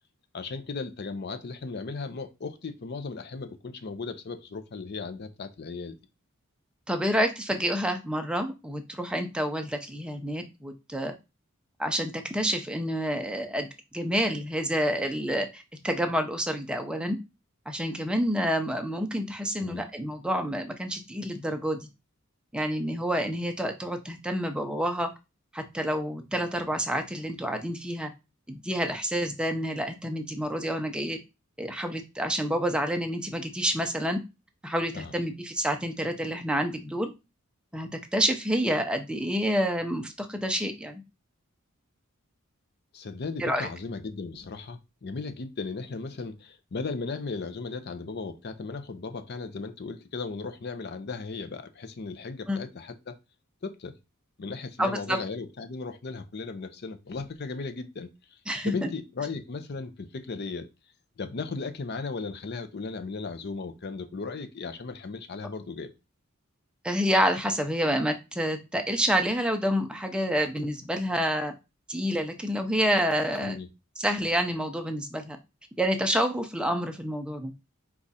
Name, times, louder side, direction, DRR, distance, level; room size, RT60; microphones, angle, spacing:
voice 1, 0.3-6.0 19.6-19.8 34.9-35.1 42.9-53.2 53.6-54.0 54.4-58.4 58.6-60.7 61.2-65.9 73.4-73.7, left 4 dB, 50° left, 0.5 m, -36 dB
voice 2, 6.9-11.1 11.8-17.2 17.7-21.9 22.5-25.1 25.5-28.1 28.5-31.2 31.6-34.2 34.6-37.1 37.7-41.0 43.4-43.7 52.5-52.6 54.8-55.2 58.5-58.9 66.8-71.5 71.9-73.6 74.0-75.4 75.8-77.5, equal, 5° right, 0.5 m, -28 dB
4.8 x 2.4 x 4.1 m
head